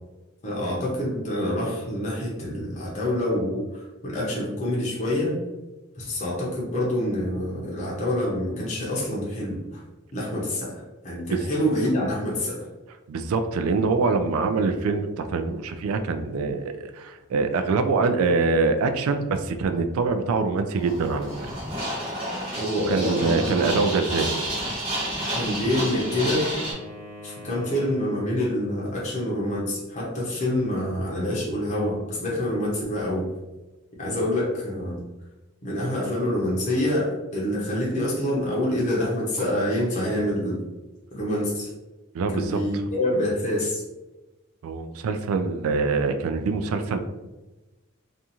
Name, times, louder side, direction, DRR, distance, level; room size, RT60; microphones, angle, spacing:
voice 1, 0.4-5.4 6.0-9.8 10.1-12.6 22.5-23.4 25.3-26.5 27.2-33.3 34.0-35.0 35.6-40.6 41.1-41.7 42.3-43.8, left 1 dB, 35° left, -5 dB, 0.6 m, -26 dB
voice 2, 13.1-21.3 22.9-24.3 42.1-42.6 44.6-47.0, right 4 dB, 90° right, 9 dB, 0.3 m, -24 dB
sound 1, 20.7-26.7, equal, 35° right, 1.2 m, -30 dB
Wind instrument woodwind instrument, 24.9-28.5, left 1 dB, 15° right, 0.6 m, -44 dB
2.5 x 2.3 x 2.8 m, 1.1 s
head